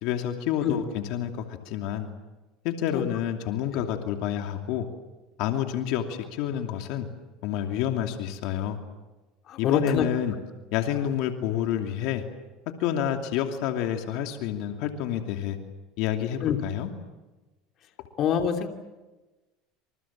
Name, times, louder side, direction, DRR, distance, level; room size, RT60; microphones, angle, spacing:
voice 1, 0.0-2.1 2.6-4.9 5.4-7.1 7.4-8.8 9.6-10.3 10.7-12.2 12.8-15.6 16.0-16.9, left 10 dB, 70° left, 5 dB, 2.8 m, -28 dB
voice 2, 9.5-10.1 16.4-16.6 18.2-18.7, left 8 dB, 50° left, 5 dB, 2.9 m, -25 dB
28.0 x 27.0 x 7.5 m, 1.1 s
supercardioid pair, 115°, 0 cm